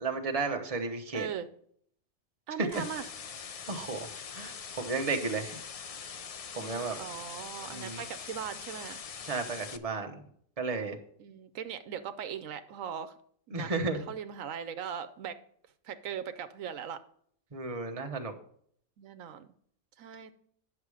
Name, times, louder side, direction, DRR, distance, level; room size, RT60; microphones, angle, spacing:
voice 1, 0.0-1.3 3.7-4.1 4.4-5.6 6.5-7.0 7.7-8.0 9.2-10.2 10.6-11.0 13.5-14.0 17.5-18.3, right 4 dB, 30° right, 4 dB, 1.1 m, -33 dB
voice 2, 1.1-1.5 2.5-3.1 6.6-9.0 11.2-13.1 13.5-13.8 14.1-15.4 15.8-17.0 19.0-19.5 20.0-20.3, right 8 dB, 80° right, 10 dB, 1.1 m, -39 dB
sound 1, 2.7-9.8, left 6 dB, 65° left, 0.3 m, -43 dB
9.8 x 6.7 x 4.8 m, 0.63 s
omnidirectional pair, 1.3 m